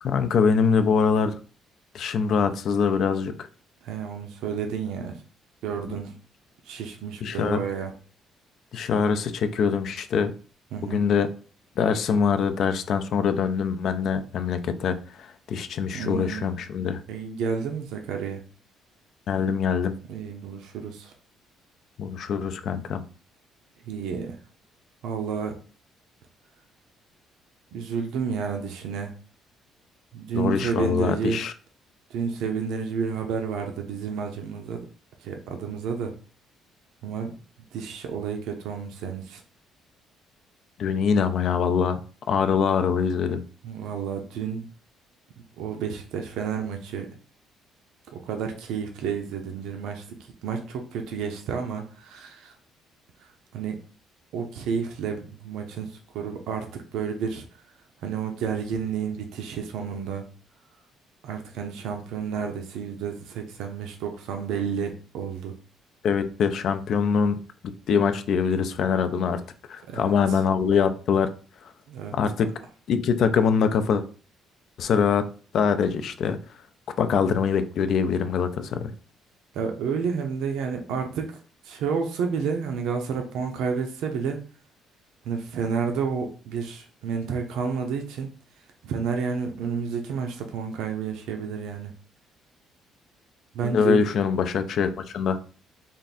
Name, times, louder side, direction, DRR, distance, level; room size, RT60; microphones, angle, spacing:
voice 1, 0.0-1.3 1.9-3.5 5.9-6.0 7.2-7.6 8.7-10.3 10.9-11.3 11.8-17.0 19.3-19.9 22.0-23.0 30.3-31.5 40.8-42.0 42.3-43.4 66.0-67.4 67.9-69.4 69.7-71.3 72.1-72.5 72.9-74.0 74.8-75.2 75.5-76.4 77.0-78.9 93.6-95.4, left 6 dB, 55° left, 9 dB, 0.4 m, -23 dB
voice 2, 3.8-5.2 5.6-6.1 6.6-7.9 10.7-11.0 15.9-16.5 17.1-18.4 20.1-21.1 23.9-24.4 25.0-25.5 27.7-29.1 30.1-31.4 32.1-34.9 35.2-36.1 37.0-37.3 37.7-39.4 43.6-44.7 45.6-47.1 48.1-52.5 53.2-53.8 54.3-57.5 58.0-60.3 61.2-65.5 69.9-70.4 71.9-72.1 79.5-84.4 85.2-88.3 88.8-91.9 93.5-94.0, right 6 dB, 80° right, 4 dB, 0.6 m, -30 dB
3.5 x 2.5 x 4.1 m, 0.39 s
cardioid pair, 145°, 0 cm